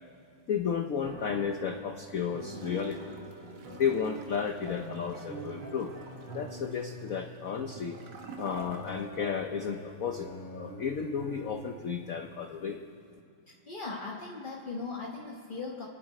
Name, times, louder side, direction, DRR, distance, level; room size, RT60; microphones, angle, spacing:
voice 1, 0.5-3.1 3.7-5.9 6.3-8.0 8.4-12.8, left 7 dB, 80° left, 5 dB, 0.7 m, -33 dB
sound 1, 1.0-11.5, right 1 dB, 75° right, 4.2 m, -44 dB
Gurgling / Toilet flush, 2.5-9.4 9.7-9.8, right 5 dB, 60° right, 1.7 m, -49 dB
voice 2, 13.5-15.9, left 3 dB, 30° left, -3 dB, 1.1 m, -39 dB
27.0 x 10.5 x 5.0 m, 2.6 s
omnidirectional pair, 2.4 m